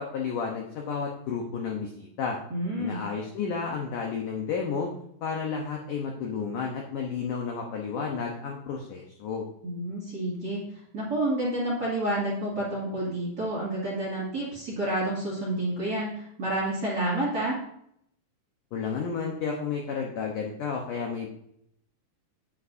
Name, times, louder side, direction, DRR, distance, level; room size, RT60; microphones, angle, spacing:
voice 1, 0.0-2.4 2.8-4.9 5.2-9.4 18.7-21.3, left 5 dB, 75° left, 0 dB, 1.9 m, -32 dB
voice 2, 2.5-3.0 9.6-10.6 10.9-17.5, right 1 dB, 30° right, -6 dB, 2.1 m, -29 dB
9.9 x 8.7 x 2.7 m, 0.72 s
omnidirectional pair, 4.9 m